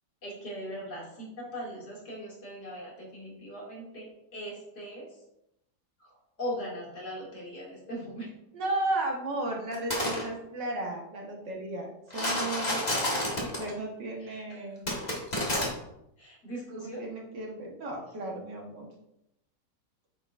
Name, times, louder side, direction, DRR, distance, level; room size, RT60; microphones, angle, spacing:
voice 1, 0.2-5.2 6.0-8.3 14.2-14.6 16.2-17.1, equal, 60° left, -5 dB, 3.3 m, -40 dB
voice 2, 8.5-12.8 13.4-14.8 17.0-18.9, right 2 dB, 70° right, -1 dB, 2.2 m, -34 dB
sound 1, 9.7-10.2 12.1-13.7 14.9-15.7, left 1 dB, 25° left, 1.7 m, -29 dB
8.8 x 6.8 x 2.7 m, 0.83 s
omnidirectional pair, 2.0 m